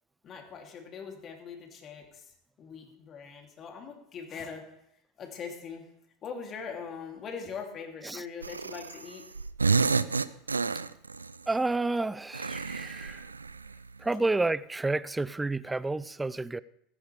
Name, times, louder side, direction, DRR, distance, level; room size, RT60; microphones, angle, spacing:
voice 1, 0.2-4.7 5.2-5.9 6.2-9.3 14.0-14.3, left 6 dB, 35° left, 2.9 m, -42 dB
sound 1, 8.4-9.1 9.3-11.3 12.3-13.8, right 4 dB, 85° right, 0.4 m, -29 dB
voice 2, 11.5-13.3 14.0-16.6, right 2 dB, 10° right, 0.5 m, -30 dB
16.0 x 15.0 x 3.4 m
figure-of-eight pair, 75°, 0 cm